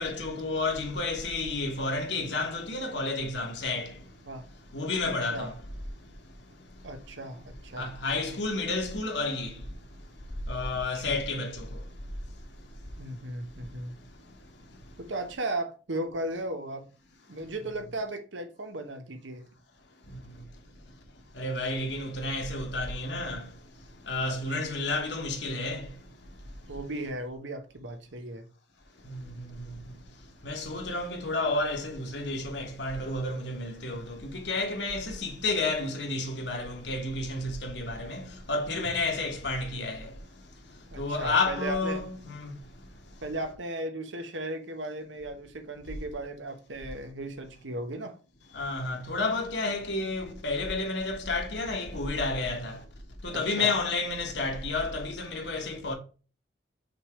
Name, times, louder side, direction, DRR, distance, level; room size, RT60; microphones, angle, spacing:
voice 1, 0.0-3.9 4.7-5.5 7.8-9.5 10.5-11.7 21.4-23.4 24.1-25.8 29.1-29.2 30.4-38.2 38.5-40.1 41.0-42.5 48.5-52.8 53.2-55.9, left 3 dB, 70° left, 1.5 m, -31 dB
voice 2, 5.0-5.5 6.8-7.9 10.9-11.2 13.0-13.9 15.0-16.9 17.3-19.4 24.2-24.4 26.7-28.4 40.9-42.0 43.2-48.1 53.3-53.8, right 1 dB, 90° right, 1.1 m, -36 dB
5.8 x 3.5 x 4.8 m
head